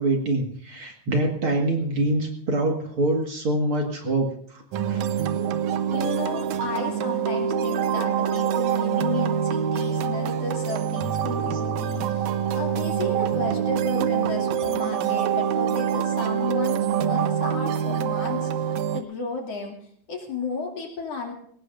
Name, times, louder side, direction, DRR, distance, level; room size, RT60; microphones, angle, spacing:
voice 1, 0.0-4.6 4.9-5.1 11.5-11.6, right 2 dB, 50° right, 2 dB, 2.4 m, -25 dB
sound 1, 4.7-19.0, right 8 dB, 80° right, 2.2 m, -25 dB
voice 2, 5.9-19.8 20.1-21.3, left 4 dB, 55° left, 1 dB, 3.5 m, -33 dB
21.5 x 18.5 x 2.6 m, 0.63 s
omnidirectional pair, 3.4 m